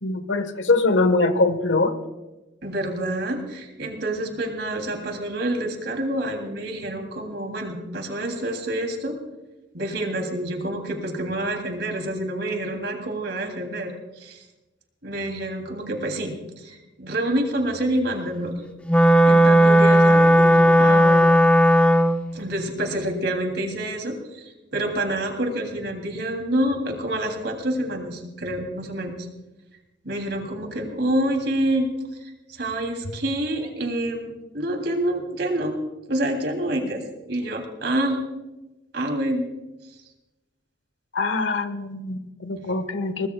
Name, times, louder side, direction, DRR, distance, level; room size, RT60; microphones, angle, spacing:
voice 1, 0.0-2.0 41.1-43.3, left 3 dB, 85° left, 10 dB, 1.3 m, -23 dB
voice 2, 2.6-9.2 9.7-13.9 14.2-14.4 15.0-18.6 19.3-21.3 22.3-29.1 30.0-31.9 32.2-35.8 36.1-38.2 38.9-39.5, right 1 dB, 65° right, 3 dB, 3.0 m, -27 dB
Wind instrument woodwind instrument, 18.9-22.3, equal, 5° left, 0.6 m, -15 dB
22.5 x 19.5 x 2.3 m, 1.0 s
head